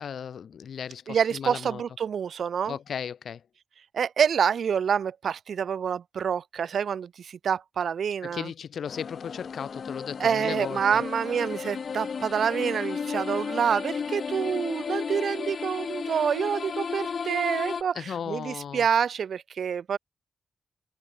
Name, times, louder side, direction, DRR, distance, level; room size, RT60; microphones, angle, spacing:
voice 1, 0.0-1.8 2.7-3.4 8.2-11.0 18.0-18.9, left 7 dB, 80° left, 3.6 m, -36 dB
voice 2, 1.1-2.7 3.9-8.5 10.2-20.0, right 7 dB, 80° right, 1.7 m, -27 dB
sound 1, 8.8-17.8, left 6 dB, 60° left, 1.4 m, -34 dB
wide cardioid pair, 135°, 0 cm